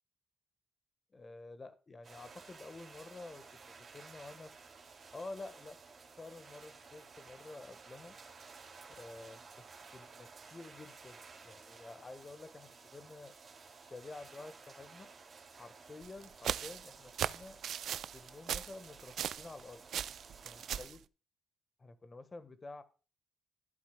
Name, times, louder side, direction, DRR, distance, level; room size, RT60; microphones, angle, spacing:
voice 1, 1.1-4.5 5.1-5.8 6.2-8.1 9.0-9.7 9.9-13.3 13.8-15.1 15.5-17.6 18.1-19.8 20.3-21.0 21.8-22.8, left 3 dB, 30° left, 11 dB, 1.5 m, -50 dB
sound 1, 2.0-20.9, right 4 dB, 45° right, 2.6 m, -55 dB
sound 2, 16.0-19.6 19.9-21.0, right 9 dB, 65° right, 0.4 m, -38 dB
14.0 x 8.5 x 2.3 m, 0.35 s
cardioid pair, 90°, 0 cm